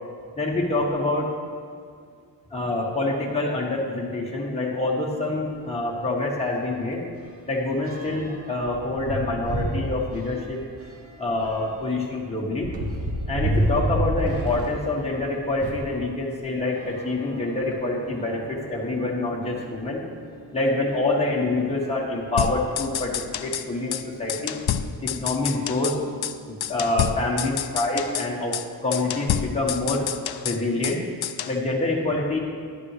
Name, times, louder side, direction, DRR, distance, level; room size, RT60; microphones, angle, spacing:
voice 1, 0.4-1.3 2.5-7.0 7.5-10.6 11.2-12.7 13.3-20.0 20.5-24.6 25.0-26.0 26.5-30.1 30.4-31.0 31.5-32.4, left 2 dB, 15° left, -3 dB, 1.4 m, -26 dB
sound 1, 5.5-5.7 6.0-6.2 6.5-16.0 16.7-18.0 18.7-18.8 19.1-19.2 20.8-20.9 21.6-21.9 22.3-23.5, right 1 dB, 35° right, 1.1 m, -31 dB
sound 2, 16.8-28.4, equal, 5° right, 1.2 m, -47 dB
sound 3, 22.4-23.7 23.9-24.0 24.3-26.0 26.2-26.4 26.6-28.3 28.5-28.7 28.9-31.0 31.2-31.6, left 9 dB, 65° left, 0.5 m, -28 dB
11.5 x 11.0 x 3.3 m, 2.2 s
wide cardioid pair, 110°, 41 cm